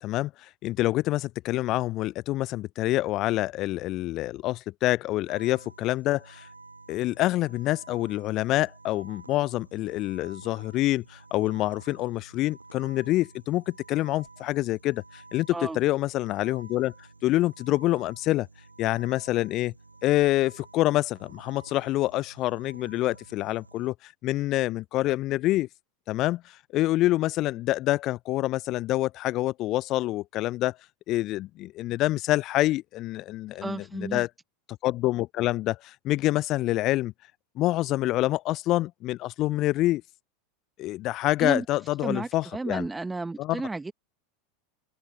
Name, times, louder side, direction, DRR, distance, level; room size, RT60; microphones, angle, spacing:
voice 1, 0.0-6.5 6.9-16.9 17.2-18.5 18.8-19.7 20.0-25.7 26.1-26.4 26.7-30.8 31.1-34.3 34.8-37.1 37.6-40.0 40.8-42.9 43.4-43.6, left 16 dB, 45° left, 0.6 m, -26 dB
sound 1, 5.3-23.9, right 3 dB, 85° right, 3.2 m, -51 dB
voice 2, 33.6-34.3 41.4-41.6 42.0-43.9, right 3 dB, 10° right, 1.3 m, -32 dB
figure-of-eight pair, 80°, 0 cm